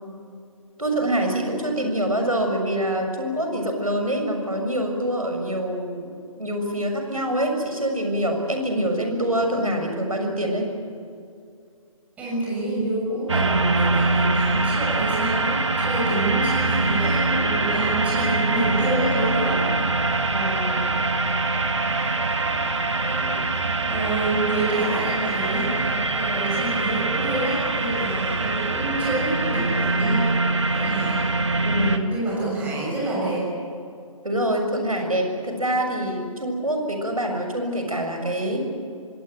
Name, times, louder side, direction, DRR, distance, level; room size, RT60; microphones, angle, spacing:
voice 1, 0.8-6.1 6.4-10.7 20.3-21.0 31.6-32.1 34.2-38.6, right 1 dB, 80° right, 3 dB, 6.8 m, -25 dB
voice 2, 12.2-19.6 22.9-23.5 23.9-30.3 30.7-31.2 32.1-33.5, right 2 dB, 10° right, -5 dB, 6.6 m, -27 dB
sound 1, 13.3-32.0, right 3 dB, 55° right, 2.1 m, -23 dB
25.5 x 19.0 x 9.2 m, 2.4 s
figure-of-eight pair, 145°, 18 cm